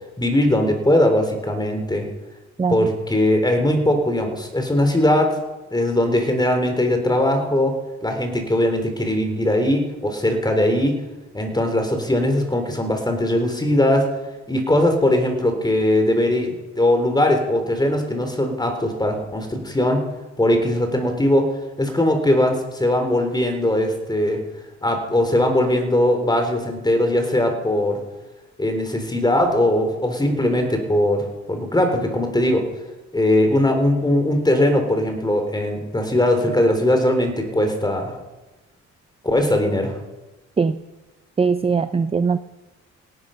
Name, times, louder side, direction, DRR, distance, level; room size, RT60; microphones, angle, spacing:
voice 1, 0.2-2.1 2.7-5.4 5.7-11.0 11.3-14.1 14.5-20.0 20.4-21.5 21.8-24.4 24.8-28.0 28.6-32.6 33.1-38.2 39.2-40.0, left 1 dB, 15° left, 5 dB, 3.8 m, -20 dB
voice 2, 41.4-42.4, right 5 dB, 20° right, 12 dB, 0.6 m, -20 dB
17.5 x 12.0 x 5.8 m, 1.1 s
cardioid pair, 90°, 30 cm